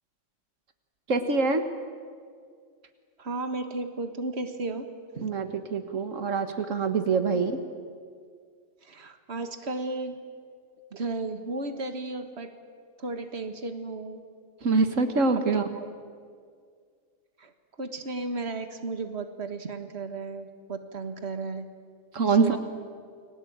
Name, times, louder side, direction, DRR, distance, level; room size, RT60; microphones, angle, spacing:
voice 1, 1.1-1.6 5.2-7.6 14.6-15.7 22.1-22.6, right 4 dB, 85° right, 7 dB, 1.9 m, -25 dB
voice 2, 3.2-4.9 5.2-5.3 7.3-7.4 8.8-10.2 10.9-12.5 13.0-14.2 15.3-15.4 15.7-15.9 17.4-17.5 17.8-21.7 22.4-22.6, right 3 dB, 55° right, 7 dB, 2.0 m, -34 dB
30.0 x 22.0 x 8.9 m, 2.1 s
omnidirectional pair, 1.3 m